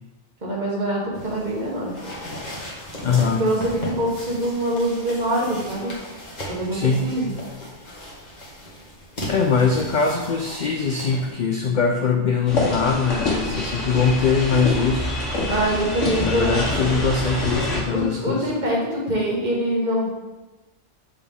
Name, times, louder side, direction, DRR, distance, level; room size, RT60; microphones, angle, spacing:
voice 1, 0.4-1.9 3.4-5.9 6.5-7.3 15.5-16.6 17.9-20.1, right 1 dB, 40° right, -4 dB, 1.6 m, -24 dB
sound 1, 1.1-11.3, equal, 40° left, 1.4 m, -36 dB
voice 2, 3.0-3.5 6.7-7.1 9.3-15.1 16.2-18.5, left 5 dB, 60° left, 3 dB, 0.5 m, -22 dB
sound 2, 12.5-17.8, left 1 dB, 90° left, 1.7 m, -26 dB
7.0 x 4.3 x 3.6 m, 1.1 s
omnidirectional pair, 1.2 m